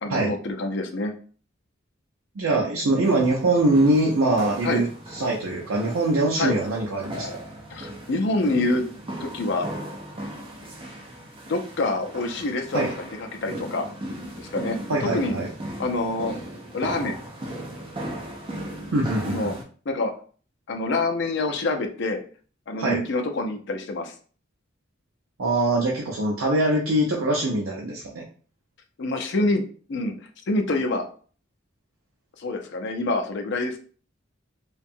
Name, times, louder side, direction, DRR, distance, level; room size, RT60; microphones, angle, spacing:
voice 1, 0.0-1.1 4.6-4.8 6.4-6.6 7.7-8.8 9.2-9.7 11.5-13.1 13.4-13.9 14.4-15.3 15.8-16.3 16.7-17.2 19.2-19.5 19.9-20.1 20.7-22.2 22.7-24.1 29.0-29.6 29.9-30.1 30.5-31.1 32.4-33.8, left 2 dB, 55° left, 5 dB, 0.4 m, -26 dB
voice 2, 2.4-7.4 12.7-12.9 14.9-15.5 18.9-19.6 22.7-23.0 25.4-28.2, right 2 dB, 85° right, -1 dB, 0.5 m, -23 dB
sound 1, 3.0-19.6, right 1 dB, 25° right, 0.4 m, -37 dB
2.6 x 2.2 x 2.6 m, 0.42 s
head